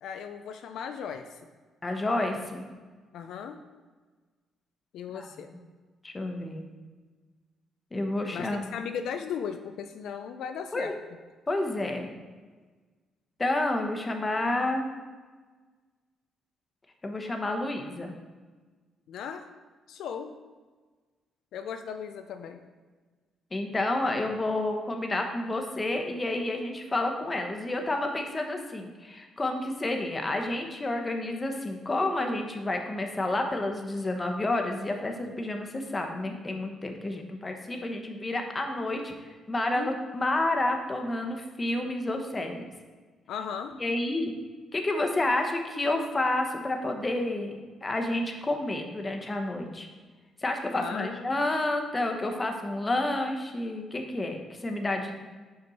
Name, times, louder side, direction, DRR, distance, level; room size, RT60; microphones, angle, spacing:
voice 1, 0.0-1.4 3.1-3.6 4.9-5.5 8.3-10.9 19.1-19.4 19.9-20.3 21.5-22.6 39.7-39.9 43.3-43.7 50.7-51.2, left 7 dB, 80° left, 7 dB, 0.4 m, -37 dB
voice 2, 1.8-2.7 5.1-5.6 6.0-6.6 7.9-8.7 10.7-10.9 11.5-12.1 13.4-14.9 17.0-18.1 23.5-39.1 39.5-42.6 43.7-44.3 44.7-49.9 50.4-55.1, left 2 dB, 25° left, 3 dB, 0.9 m, -30 dB
5.5 x 5.3 x 4.1 m, 1.4 s
cardioid pair, 90°, 0 cm